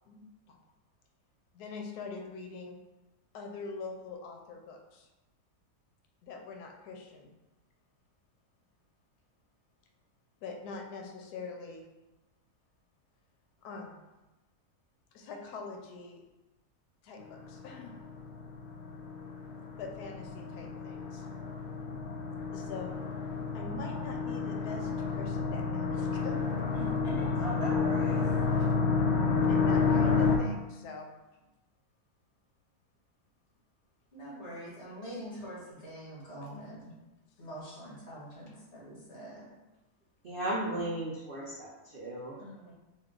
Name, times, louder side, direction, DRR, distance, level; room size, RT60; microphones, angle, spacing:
voice 1, 0.1-0.6 1.5-2.8 3.3-5.1 6.2-7.3 10.4-11.8 13.6-14.0 15.1-16.2 17.0-18.0 19.8-21.2 22.5-22.9 23.5-26.4 28.6-28.7 29.5-31.1 42.4-42.7, left 4 dB, 85° left, 2 dB, 1.1 m, -43 dB
sound 1, 17.2-30.4, left 5 dB, 70° left, 0.6 m, -30 dB
voice 2, 26.7-28.2 34.1-36.8 37.4-39.5 42.4-42.7, equal, 45° left, -7 dB, 1.7 m, -42 dB
voice 3, 40.2-42.3, right 1 dB, 65° right, -5 dB, 0.5 m, -35 dB
3.6 x 2.5 x 3.7 m, 1.1 s
omnidirectional pair, 1.6 m